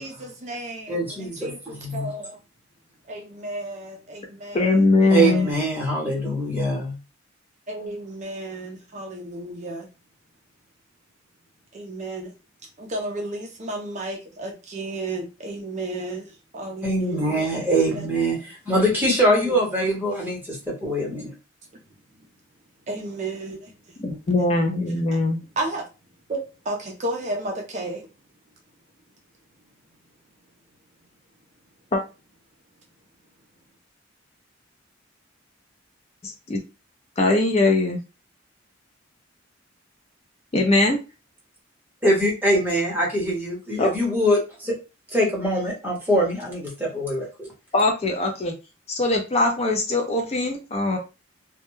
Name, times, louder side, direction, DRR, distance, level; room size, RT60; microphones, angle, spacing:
voice 1, 0.0-1.6 1.9-2.4 3.1-5.6 7.7-9.9 11.7-12.3 12.8-16.3 16.5-17.5 17.9-18.1 19.3-19.6 22.9-23.7 25.6-25.8 26.3-26.4 26.7-28.0, right 2 dB, 35° right, 0.4 m, -33 dB
voice 2, 0.9-1.5 1.8-2.1 5.1-7.0 16.8-21.3 42.0-44.8 45.1-47.5, right 1 dB, 10° right, 0.8 m, -23 dB
voice 3, 4.5-5.5 24.0-25.4 31.9-32.0 36.5-36.6 37.2-38.0 40.5-41.0 43.8-43.9 47.7-48.5 49.0-51.0, left 2 dB, 30° left, 0.4 m, -21 dB
2.2 x 2.1 x 3.0 m
head